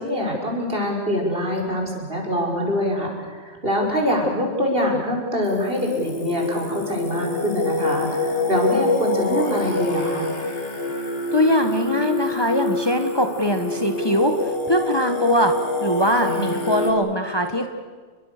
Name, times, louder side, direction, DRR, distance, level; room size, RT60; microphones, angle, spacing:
voice 1, 0.0-10.3 16.3-16.6, equal, 55° right, 0 dB, 5.7 m, -24 dB
Singing, 5.4-16.9, left 2 dB, 55° left, 2.5 m, -26 dB
voice 2, 11.3-15.5 15.8-17.7, equal, 20° left, 5 dB, 1.6 m, -21 dB
30.0 x 23.0 x 6.8 m, 1.5 s
omnidirectional pair, 1.2 m